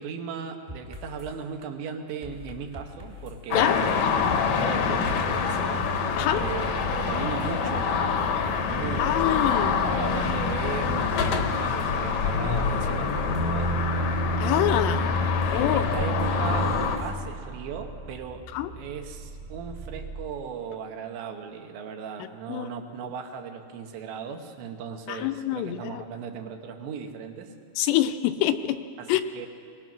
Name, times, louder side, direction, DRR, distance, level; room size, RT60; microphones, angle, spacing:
voice 1, 0.0-5.9 6.3-8.3 8.6-13.8 15.0-15.2 15.5-16.7 17.0-18.5 18.8-27.5 29.0-29.5, right 6 dB, 90° right, 4 dB, 3.7 m, -37 dB
sound 1, 0.7-1.3 2.2-3.7 4.3-5.5 6.3-7.7 8.2-9.6 10.5-11.9 12.6-13.7 14.6-17.1, left 3 dB, 25° right, 0.9 m, -42 dB
sound 2, 3.5-17.0, left 5 dB, 65° left, 1.8 m, -25 dB
sound 3, 6.1-20.3, right 3 dB, 70° right, 2.4 m, -41 dB
voice 2, 9.0-9.9 14.4-15.0 15.5-15.9 18.5-18.7 22.5-22.7 25.1-26.0 27.8-28.8 29.1-29.3, left 12 dB, 85° left, 10 dB, 2.9 m, -25 dB
21.5 x 20.5 x 6.1 m, 2.6 s
omnidirectional pair, 5.0 m